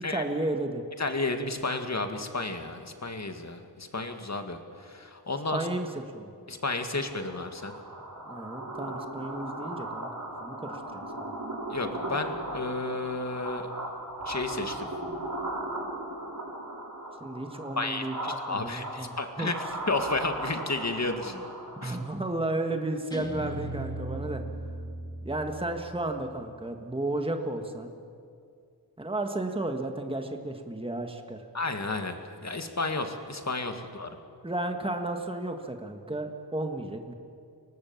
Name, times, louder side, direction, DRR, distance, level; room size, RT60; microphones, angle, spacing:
voice 1, 0.1-0.8 5.5-5.9 6.1-6.3 8.2-10.1 10.4-11.4 17.2-19.5 21.3-21.4 21.7-24.4 25.2-27.9 29.0-31.4 34.4-37.1, right 2 dB, 15° right, 4 dB, 1.6 m, -33 dB
voice 2, 1.0-5.7 6.5-7.8 11.7-13.7 14.3-14.9 17.8-19.5 19.9-21.4 21.8-22.0 31.5-34.1, left 3 dB, 40° left, 6 dB, 2.1 m, -32 dB
sound 1, 6.9-22.2, right 1 dB, 45° right, 5.1 m, -37 dB
Guitar, 23.1-26.3, right 2 dB, 10° left, 2.0 m, -37 dB
24.5 x 18.5 x 7.3 m, 2.4 s
wide cardioid pair, 70°, 42 cm